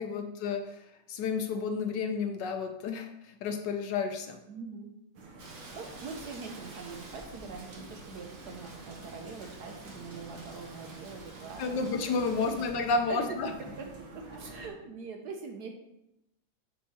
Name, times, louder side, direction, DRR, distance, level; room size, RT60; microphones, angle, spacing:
voice 1, 0.0-4.4 11.6-13.5, left 4 dB, 70° left, 6 dB, 1.2 m, -31 dB
voice 2, 4.5-4.9 5.7-12.0 12.4-12.7 13.1-13.4 13.8-13.9 14.1-15.7, right 4 dB, 65° right, 3 dB, 1.2 m, -43 dB
sound 1, 5.2-14.7, right 2 dB, 90° right, 2.0 m, -48 dB
Rain, 5.4-12.7, right 2 dB, 45° right, 1.5 m, -50 dB
6.5 x 5.5 x 4.2 m, 0.88 s
omnidirectional pair, 2.1 m